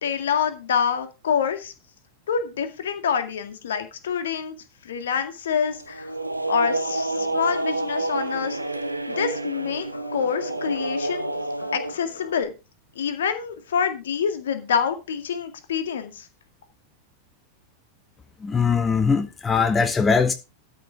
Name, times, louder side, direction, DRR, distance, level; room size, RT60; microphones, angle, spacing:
voice 1, 0.0-1.7 2.3-4.6 4.8-6.1 6.5-8.6 9.1-9.9 10.1-11.3 11.7-12.5 13.0-16.3, left 7 dB, 65° left, 2.0 m, -26 dB
sound 1, 5.5-11.9, right 2 dB, 85° right, 0.8 m, -29 dB
sound 2, 6.4-12.4, left 1 dB, 80° left, 3.8 m, -41 dB
voice 2, 18.4-20.3, left 5 dB, 15° left, 0.9 m, -21 dB
13.0 x 6.1 x 4.8 m
figure-of-eight pair, 90°, 0 cm